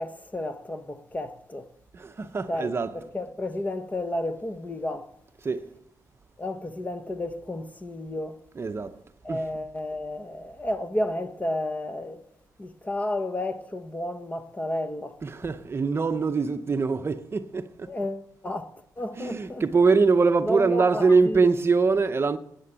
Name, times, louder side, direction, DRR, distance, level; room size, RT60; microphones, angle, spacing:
voice 1, 0.0-1.7 2.2-5.1 6.4-8.4 9.2-12.2 12.6-15.2 17.9-19.8 20.4-21.4, left 1 dB, 20° left, 1.1 m, -32 dB
voice 2, 1.9-3.1 5.4-5.6 8.5-9.0 9.3-9.5 15.2-17.9 19.2-22.4, right 4 dB, 35° right, 0.7 m, -23 dB
13.0 x 9.7 x 8.9 m
cardioid pair, 95°, 7 cm